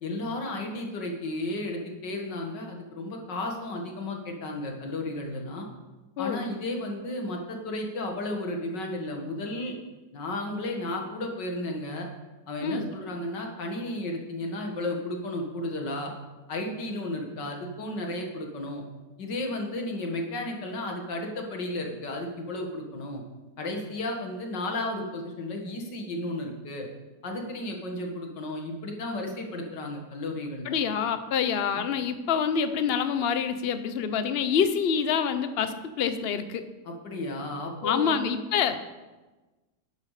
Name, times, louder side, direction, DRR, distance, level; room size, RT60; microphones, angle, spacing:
voice 1, 0.0-5.7 6.2-9.8 10.1-12.1 12.5-16.1 16.5-18.8 19.2-23.2 23.6-26.9 27.2-30.8 31.7-31.8 36.8-38.4, left 1 dB, 85° left, 2 dB, 2.4 m, -33 dB
voice 2, 30.7-36.6 37.8-38.8, left 7 dB, 50° left, 10 dB, 0.8 m, -26 dB
11.5 x 11.0 x 4.9 m, 1.2 s
omnidirectional pair, 1.8 m